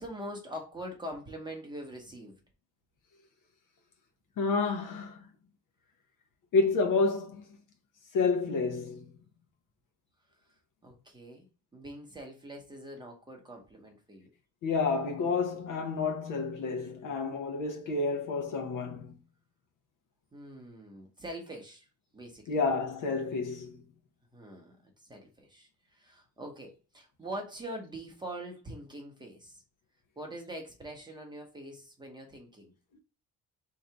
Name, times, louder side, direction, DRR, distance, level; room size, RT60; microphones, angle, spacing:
voice 1, 0.0-2.3 10.8-11.5 11.7-14.3 20.3-21.9 22.1-22.6 24.3-24.8 25.1-29.6 30.2-32.7, right 1 dB, 15° right, 0.8 m, -43 dB
voice 2, 4.4-5.2 6.5-7.4 8.1-9.0 14.6-19.2 22.5-23.8, left 4 dB, 65° left, 0.9 m, -29 dB
3.9 x 2.9 x 4.5 m
cardioid pair, 180°, 34 cm